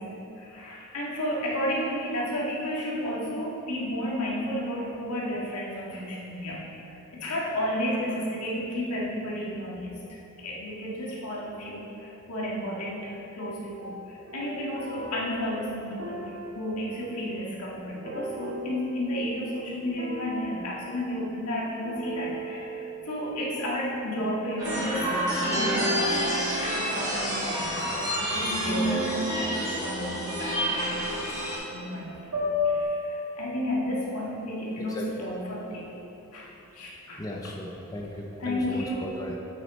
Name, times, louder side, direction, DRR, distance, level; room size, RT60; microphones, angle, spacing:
voice 1, 0.0-10.0 10.4-31.3 31.7-32.3 32.6-35.9 36.3-37.3 38.4-39.1, equal, 90° left, -4 dB, 1.7 m, -32 dB
sound 1, 13.8-19.2 20.0-21.6 21.8-23.1 24.7-27.8 28.7-32.8, equal, 75° right, 1.4 m, -35 dB
sound 2, 24.6-31.6, equal, 15° right, 1.9 m, -29 dB
voice 2, 37.2-39.4, left 1 dB, 15° left, -1 dB, 0.5 m, -36 dB
8.6 x 6.0 x 4.2 m, 2.9 s
head